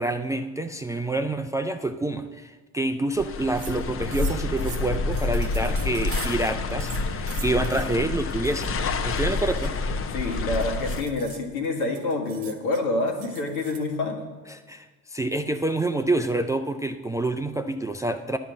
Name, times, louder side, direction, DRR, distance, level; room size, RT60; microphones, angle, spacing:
voice 1, 0.0-9.8 14.5-18.4, right 2 dB, 10° right, 7 dB, 0.3 m, -27 dB
sound 1, 3.1-11.0, left 3 dB, 30° left, 0.8 m, -28 dB
sound 2, 3.2-3.3 3.5-3.8 4.1-6.5 6.8-7.9 8.3-8.7 9.1-13.9, right 9 dB, 75° right, 1.0 m, -43 dB
voice 2, 10.1-14.3, left 2 dB, 75° left, 3 dB, 1.5 m, -27 dB
10.5 x 6.1 x 7.3 m, 1.3 s
figure-of-eight pair, 55°, 43 cm